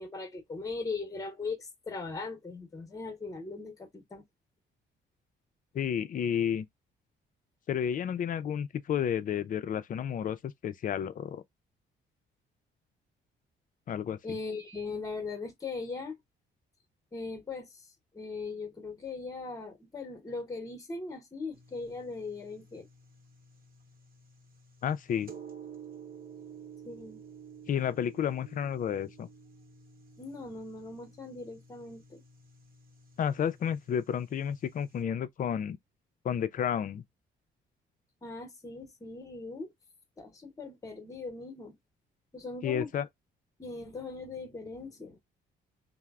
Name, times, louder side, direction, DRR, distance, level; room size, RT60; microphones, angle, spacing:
voice 1, 0.0-4.2 14.2-16.2 17.1-17.9 18.1-22.9 26.8-27.2 30.2-32.2 38.2-39.7 40.2-41.8 42.3-42.9 43.6-45.2, left 3 dB, 15° left, 0.8 m, -39 dB
voice 2, 5.7-6.7 7.7-11.4 13.9-14.4 24.8-25.3 27.7-29.3 33.2-35.8 36.2-37.0 42.6-43.1, left 8 dB, 45° left, 0.4 m, -31 dB
sound 1, 21.5-35.0, right 6 dB, 50° right, 1.0 m, -52 dB
3.0 x 2.0 x 2.3 m
cardioid pair, 90°, 20 cm